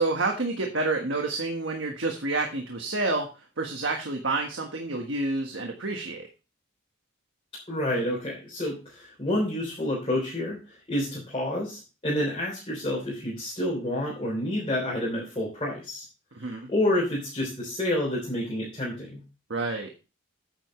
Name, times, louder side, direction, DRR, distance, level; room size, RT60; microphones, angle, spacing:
voice 1, 0.0-6.3 16.3-16.7 19.5-19.9, right 3 dB, 65° right, 2 dB, 1.5 m, -29 dB
voice 2, 7.7-16.1 16.4-19.2, left 1 dB, 25° left, -5 dB, 3.6 m, -29 dB
9.4 x 8.9 x 3.2 m, 0.31 s
head